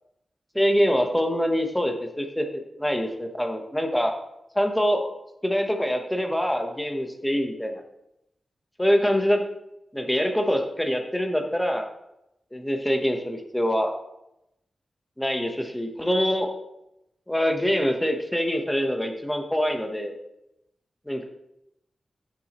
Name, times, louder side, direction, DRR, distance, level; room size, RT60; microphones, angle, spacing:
voice 1, 0.5-4.1 4.5-5.0 5.4-7.8 8.8-9.4 9.9-11.9 12.5-13.9 15.2-16.5 17.3-20.2 21.1-21.2, equal, 5° left, 4 dB, 1.0 m, -24 dB
10.5 x 7.0 x 3.0 m, 0.83 s
wide cardioid pair, 125°, 0 cm